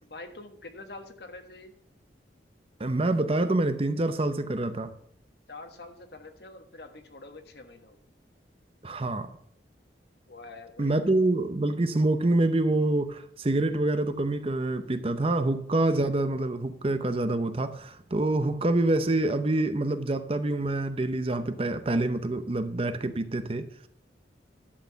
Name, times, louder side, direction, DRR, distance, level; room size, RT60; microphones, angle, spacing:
voice 1, 0.0-1.7 5.5-8.0 10.3-10.9 11.3-11.4, left 2 dB, 60° left, 1.3 m, -45 dB
voice 2, 2.8-4.9 8.8-9.3 10.8-23.7, right 2 dB, 30° right, 0.6 m, -26 dB
11.5 x 4.7 x 6.9 m
head